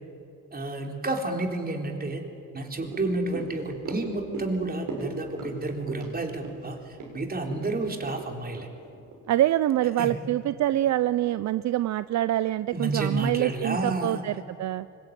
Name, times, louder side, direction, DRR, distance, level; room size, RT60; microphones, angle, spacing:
voice 1, 0.5-2.2 2.5-8.7 10.0-10.2 12.7-14.3, right 2 dB, 30° right, 3 dB, 3.9 m, -30 dB
sound 1, 2.8-9.3 9.6-9.7, right 3 dB, 85° right, 6.9 m, -39 dB
voice 2, 9.3-14.9, right 13 dB, 65° right, 15 dB, 0.6 m, -25 dB
24.5 x 21.5 x 9.3 m, 2.5 s
cardioid pair, 90°, 30 cm